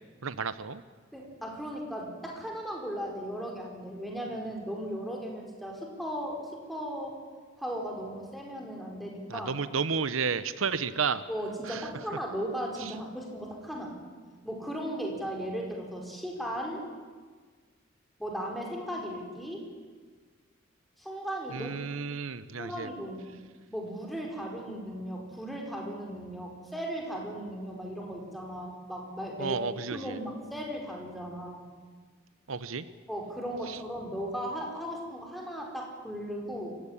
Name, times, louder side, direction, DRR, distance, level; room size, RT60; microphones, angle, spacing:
voice 1, 0.2-0.8 9.3-11.2 11.7-11.9 21.5-22.9 29.4-30.2 32.5-32.8, right 5 dB, 85° right, 14 dB, 0.9 m, -32 dB
voice 2, 1.1-7.2 7.6-9.5 10.7-10.8 11.3-13.9 14.4-16.8 18.2-19.7 21.0-21.7 22.6-23.3 23.7-29.6 29.9-31.7 33.1-36.8, equal, ahead, -1 dB, 4.8 m, -37 dB
25.0 x 16.0 x 10.0 m, 1.5 s
head